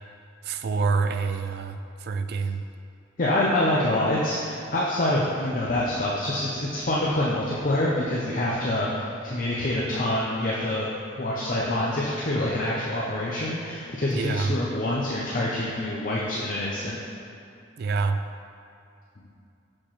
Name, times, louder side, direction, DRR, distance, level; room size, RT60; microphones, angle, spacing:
voice 1, 0.4-2.6 14.1-14.6 17.8-18.2, right 4 dB, 55° right, 8 dB, 0.3 m, -27 dB
voice 2, 3.2-10.9 11.2-17.0, left 1 dB, 45° left, -6 dB, 0.7 m, -26 dB
6.3 x 6.0 x 3.1 m, 2.6 s
head